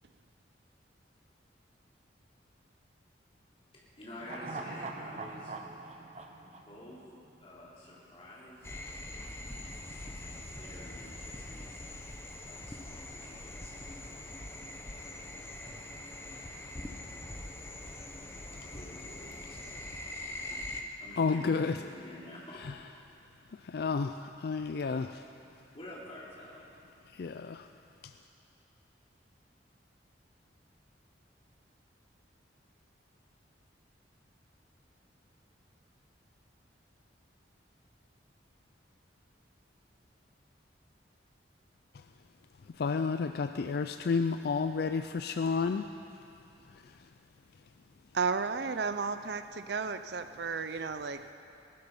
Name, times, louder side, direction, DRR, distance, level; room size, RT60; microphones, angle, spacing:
voice 1, 3.7-5.5 6.3-7.0 7.4-8.7 10.0-11.8 12.4-14.2 16.1-16.5 17.6-18.1 18.4-19.9 20.4-22.6 25.7-26.6, left 1 dB, 30° left, -6 dB, 3.4 m, -50 dB
sound 1, 4.2-7.6 7.9-8.0, right 3 dB, 35° right, 0.8 m, -43 dB
sound 2, 8.6-20.8, left 1 dB, 15° left, 0.8 m, -43 dB
voice 2, 21.2-21.7 22.6-22.7 23.6-25.2 27.1-27.7 28.0-28.1 42.8-45.8, left 4 dB, 55° left, 8 dB, 0.4 m, -31 dB
voice 3, 48.1-51.3, right 5 dB, 60° right, 10 dB, 0.5 m, -33 dB
19.5 x 12.0 x 5.5 m, 2.7 s
head